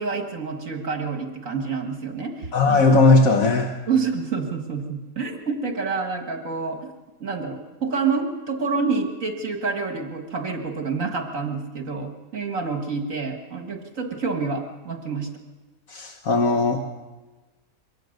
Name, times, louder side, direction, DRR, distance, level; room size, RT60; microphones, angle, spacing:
voice 1, 0.0-2.8 3.9-6.8 7.2-15.3, right 4 dB, 65° right, 4 dB, 2.1 m, -28 dB
voice 2, 2.5-3.7 15.9-16.8, left 3 dB, 70° left, 4 dB, 1.7 m, -18 dB
23.5 x 18.0 x 6.6 m, 1.2 s
omnidirectional pair, 1.5 m